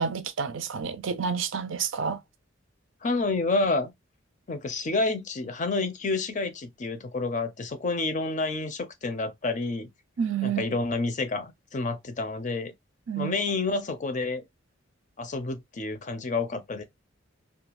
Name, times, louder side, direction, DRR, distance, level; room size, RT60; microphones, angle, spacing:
voice 1, 0.0-2.2 10.2-10.6 13.1-13.3, right 6 dB, 75° right, 0.5 m, -29 dB
voice 2, 3.0-3.9 4.5-9.9 10.4-12.7 13.2-14.4 15.2-16.8, left 3 dB, 35° left, 0.5 m, -29 dB
2.3 x 2.3 x 2.9 m
head